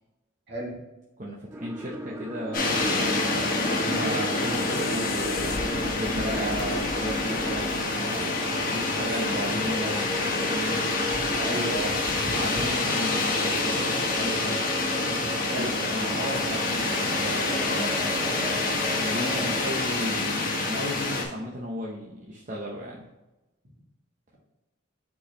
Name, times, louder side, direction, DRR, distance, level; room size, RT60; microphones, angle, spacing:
voice 1, 0.5-0.8 11.3-12.0 15.5-16.0, right 2 dB, 55° right, -3 dB, 2.0 m, -33 dB
voice 2, 1.2-3.0 3.7-8.3 8.7-10.8 12.3-14.6 15.4-18.1 18.9-23.1, equal, 35° right, -4 dB, 0.8 m, -35 dB
sound 1, 1.5-19.6, right 1 dB, 10° right, 0.3 m, -39 dB
sound 2, 2.5-21.2, left 2 dB, 40° left, 1.2 m, -27 dB
sound 3, 4.1-8.9, left 3 dB, 80° left, 0.6 m, -40 dB
7.0 x 4.7 x 3.2 m, 1.0 s
head